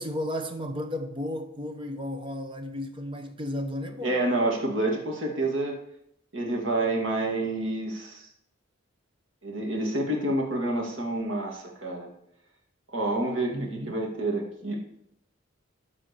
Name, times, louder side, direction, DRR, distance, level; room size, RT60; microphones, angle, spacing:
voice 1, 0.0-4.1 13.5-13.9, left 1 dB, 25° right, 1.0 m, -33 dB
voice 2, 4.0-5.7 6.3-8.2 9.4-12.1 12.9-14.8, right 2 dB, 75° right, 2.4 m, -28 dB
13.0 x 4.3 x 6.9 m
head